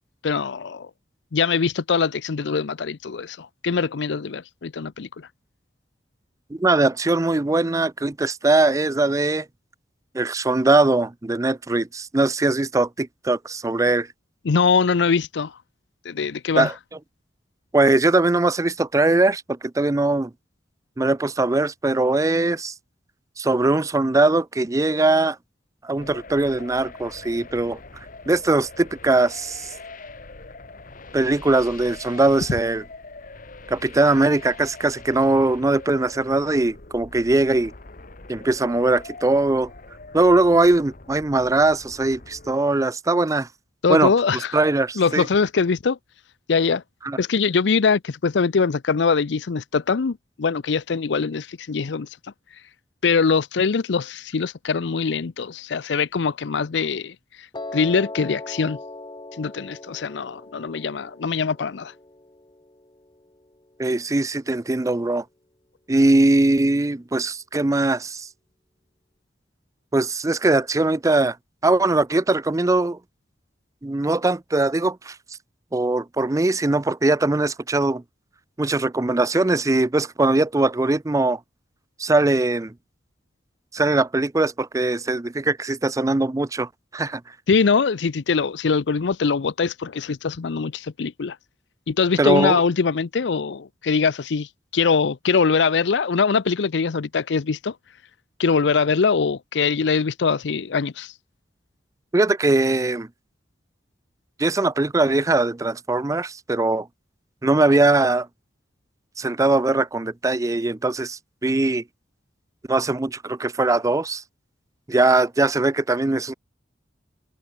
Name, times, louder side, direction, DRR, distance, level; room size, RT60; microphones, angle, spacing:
voice 1, 0.2-0.9 1.3-5.1 14.4-15.5 16.0-16.7 43.8-44.6 45.0-46.0 46.5-46.8 47.2-52.1 53.0-57.1 57.7-58.8 59.4-61.9 87.5-91.4 91.9-94.5 94.7-97.7 98.4-101.1, left 5 dB, 75° left, 0.5 m, -22 dB
voice 2, 6.5-9.5 10.1-14.1 16.6-16.7 17.7-20.3 21.0-22.7 23.4-25.4 25.8-27.8 28.3-29.7 31.1-32.8 33.7-37.7 38.3-39.7 40.1-43.5 43.9-44.1 44.5-45.3 47.0-47.2 63.8-65.2 65.9-68.3 69.9-71.4 71.6-73.0 73.8-75.2 75.7-78.0 78.6-81.4 82.0-82.7 83.7-87.2 92.2-92.6 102.1-103.1 104.4-106.9 107.4-108.3 109.2-111.8 112.7-114.2 114.9-116.3, right 2 dB, 20° right, 0.5 m, -21 dB
sound 1, 26.0-42.5, left 3 dB, 50° left, 1.7 m, -43 dB
Piano, 57.5-63.7, left 2 dB, 25° left, 1.3 m, -39 dB
head